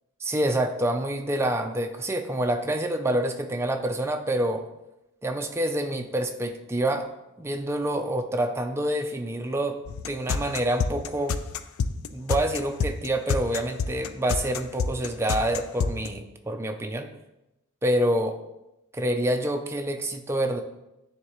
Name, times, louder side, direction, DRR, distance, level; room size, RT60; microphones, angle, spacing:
voice 1, 0.2-4.6 5.2-7.1 7.4-9.8 10.1-11.4 12.1-17.1 17.8-18.4 18.9-20.6, right 1 dB, 10° right, 5 dB, 0.4 m, -27 dB
sound 1, 9.9-16.1, left 5 dB, 65° left, 0.3 m, -28 dB
9.4 x 3.6 x 3.0 m, 0.92 s
head